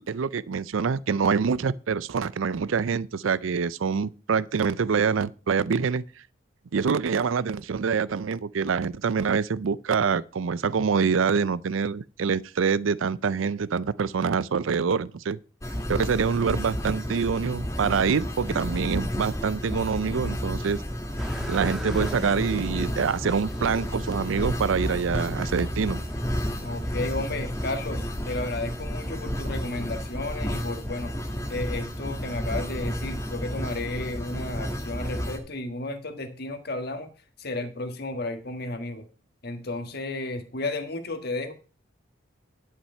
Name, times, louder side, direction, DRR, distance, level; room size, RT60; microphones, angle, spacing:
voice 1, 0.0-6.0 6.7-15.4 15.9-20.8 21.5-26.0, right 5 dB, 85° right, 0.5 m, -25 dB
sound 1, 15.6-35.4, equal, 15° left, 1.4 m, -32 dB
sound 2, 21.2-30.1, equal, ahead, 1.5 m, -39 dB
voice 2, 26.6-31.2 31.5-37.1 37.4-39.1 39.4-41.5, left 2 dB, 50° left, 1.6 m, -33 dB
11.0 x 6.1 x 5.5 m
head